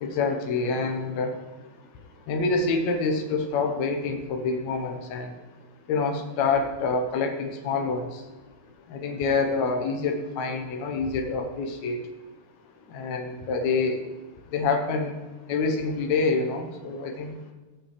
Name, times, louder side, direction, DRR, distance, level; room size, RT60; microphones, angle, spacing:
voice 1, 0.0-1.3 2.3-5.3 5.9-8.0 8.9-12.0 12.9-14.0 14.5-15.1 15.5-17.3, left 4 dB, 65° left, 3 dB, 1.9 m, -26 dB
18.5 x 6.2 x 3.3 m, 1.2 s
omnidirectional pair, 4.2 m